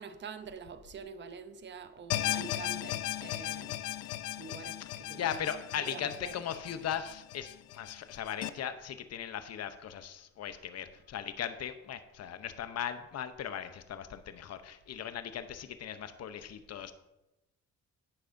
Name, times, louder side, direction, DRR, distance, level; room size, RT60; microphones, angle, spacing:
voice 1, 0.0-3.8 4.4-5.5 5.9-6.3, right 6 dB, 35° right, 0.7 m, -46 dB
sound 1, 2.1-8.5, left 14 dB, 90° left, 0.5 m, -37 dB
voice 2, 5.2-16.9, left 9 dB, 55° left, 0.8 m, -38 dB
11.5 x 8.7 x 2.7 m
cardioid pair, 90°, 30 cm